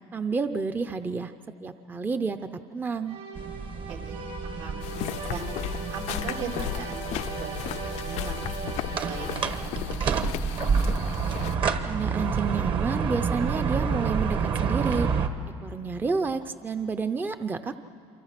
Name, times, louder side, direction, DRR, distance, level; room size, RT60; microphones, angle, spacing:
voice 1, 0.1-1.3 1.6-3.2 11.6-15.1 15.6-17.8, right 4 dB, 15° right, 9 dB, 0.6 m, -30 dB
sound 1, 3.0-9.9, right 3 dB, 60° right, 6.9 m, -39 dB
sound 2, 3.4-15.3, right 5 dB, 45° right, 1.3 m, -29 dB
voice 2, 4.4-4.8 5.3-5.5 5.9-7.7 8.0-10.8, right 5 dB, 75° right, 0 dB, 3.2 m, -39 dB
sound 3, 4.8-11.6, left 14 dB, 70° left, 0.5 m, -35 dB
28.5 x 24.0 x 5.9 m, 2.7 s
cardioid pair, 145°, 12 cm